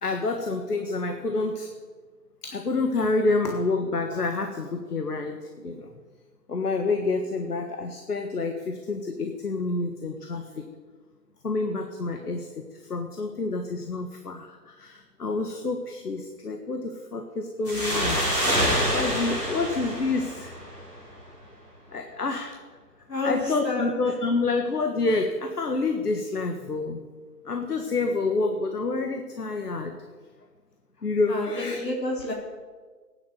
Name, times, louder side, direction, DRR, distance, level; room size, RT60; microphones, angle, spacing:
voice 1, 0.0-1.7 2.4-5.9 6.5-10.7 11.4-18.2 18.7-20.5 21.9-22.6 23.2-27.0 27.4-30.0 31.0-31.8, left 3 dB, 70° left, 5 dB, 1.7 m, -28 dB
sound 1, 17.7-21.0, equal, 5° left, 1.7 m, -26 dB
voice 2, 23.1-23.9 31.3-32.3, left 2 dB, 85° left, -3 dB, 4.4 m, -29 dB
14.5 x 10.0 x 7.9 m, 1.5 s
figure-of-eight pair, 165°, 48 cm